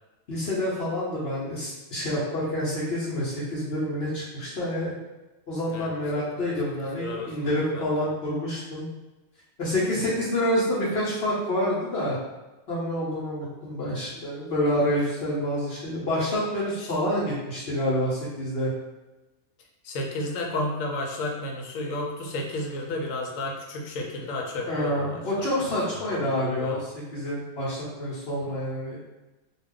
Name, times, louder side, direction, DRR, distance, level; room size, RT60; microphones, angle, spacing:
voice 1, 0.3-4.9 5.5-8.9 9.6-12.2 12.7-18.7 24.7-29.0, left 1 dB, 55° left, -7 dB, 0.9 m, -28 dB
voice 2, 5.7-6.5 6.9-7.8 16.8-16.9 19.8-26.8 28.4-28.5, left 2 dB, 80° left, 0 dB, 1.0 m, -33 dB
2.4 x 2.3 x 3.6 m, 1.1 s
omnidirectional pair, 1.4 m